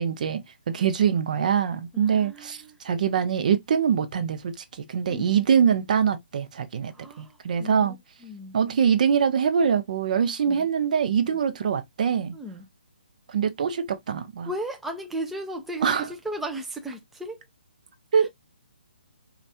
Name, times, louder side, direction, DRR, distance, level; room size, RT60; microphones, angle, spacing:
voice 1, 0.0-8.0 8.5-12.3 13.3-14.5 15.8-16.1 18.1-18.3, right 7 dB, 50° right, 0.6 m, -24 dB
voice 2, 1.9-2.8 5.1-5.4 6.9-8.0 8.2-8.6 10.5-10.7 12.3-12.7 14.5-17.4 18.2-18.3, right 1 dB, 5° right, 0.4 m, -35 dB
5.2 x 2.4 x 2.7 m
figure-of-eight pair, 140°, 5 cm